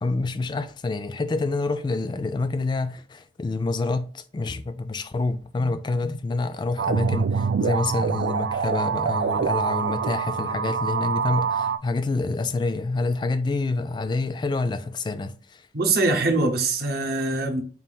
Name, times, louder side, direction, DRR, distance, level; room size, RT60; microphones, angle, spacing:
voice 1, 0.0-15.6, left 3 dB, 25° left, 0.3 m, -27 dB
sound 1, 6.8-11.8, right 6 dB, 80° right, 0.3 m, -25 dB
voice 2, 15.7-17.6, right 3 dB, 60° right, 0.8 m, -23 dB
4.2 x 2.4 x 3.7 m
head